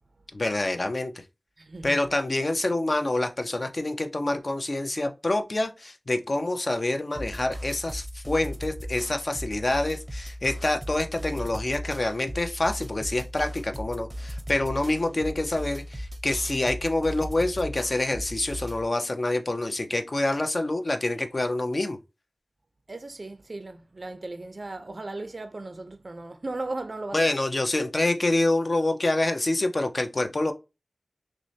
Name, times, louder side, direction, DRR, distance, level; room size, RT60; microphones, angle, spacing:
voice 1, 0.3-1.1 1.8-22.0 27.1-30.5, left 2 dB, 45° left, 0.6 m, -27 dB
voice 2, 1.6-2.0 22.9-27.3, right 2 dB, 50° right, 0.5 m, -36 dB
sound 1, 7.2-18.9, equal, 10° right, 0.7 m, -37 dB
6.0 x 2.1 x 2.7 m
wide cardioid pair, 85°, 0 cm